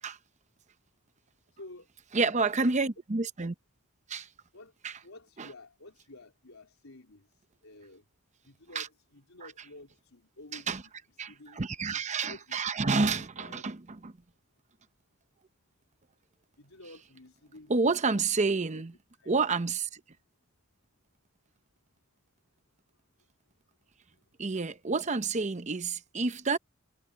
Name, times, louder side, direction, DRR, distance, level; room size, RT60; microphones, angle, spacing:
voice 1, 1.5-1.9 2.6-2.8 4.5-4.7 5.0-8.0 8.4-10.9 11.2-11.6 11.9-13.7 16.6-17.7 18.5-18.8 19.2-19.3, left 2 dB, 90° left, 4.1 m, -51 dB
voice 2, 2.1-3.5 4.1-4.3 4.8-5.0 5.4-5.5 8.7-8.9 10.5-10.8 11.2-14.1 17.7-18.9 19.3-20.0 24.4-26.6, right 4 dB, 35° right, 0.8 m, -29 dB
head